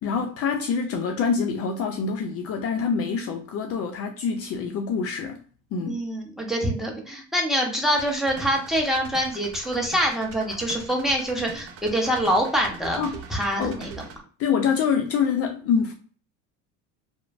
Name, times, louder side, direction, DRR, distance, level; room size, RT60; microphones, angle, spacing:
voice 1, 0.0-5.4 5.7-6.0 13.0-13.2 13.6-13.8 14.4-15.9, left 6 dB, 45° left, 0.4 m, -25 dB
voice 2, 5.9-13.0 13.3-13.9, equal, ahead, 0.8 m, -25 dB
sound 1, 8.0-14.2, right 5 dB, 40° right, 0.5 m, -41 dB
3.0 x 2.0 x 2.5 m
supercardioid pair, 110°, 35 cm